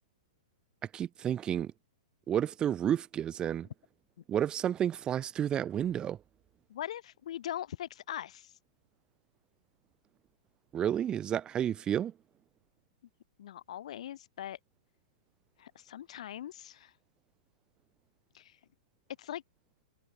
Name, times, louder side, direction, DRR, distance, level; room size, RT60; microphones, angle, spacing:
voice 1, 0.9-1.7 2.3-3.7 4.3-6.2 10.7-12.1, right 10 dB, 25° right, 7.4 m, -31 dB
voice 2, 6.7-8.5 13.4-14.6 15.6-16.9 18.3-18.6 19.2-19.4, left 11 dB, 65° left, 5.6 m, -41 dB
hypercardioid pair, 125°, 4 cm